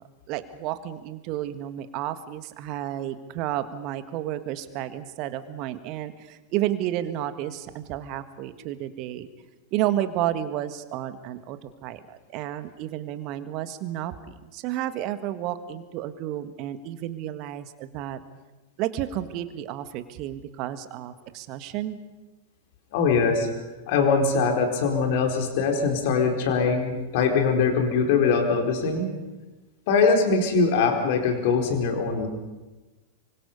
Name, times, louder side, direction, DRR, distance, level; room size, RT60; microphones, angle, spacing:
voice 1, 0.0-9.3 9.7-18.2 18.8-22.0, right 12 dB, 40° right, 11 dB, 1.7 m, -31 dB
voice 2, 22.9-23.5 23.9-29.1 29.9-32.3, left 5 dB, 50° left, 3 dB, 4.3 m, -22 dB
26.0 x 24.5 x 5.5 m, 1.1 s
figure-of-eight pair, 95°, 0 cm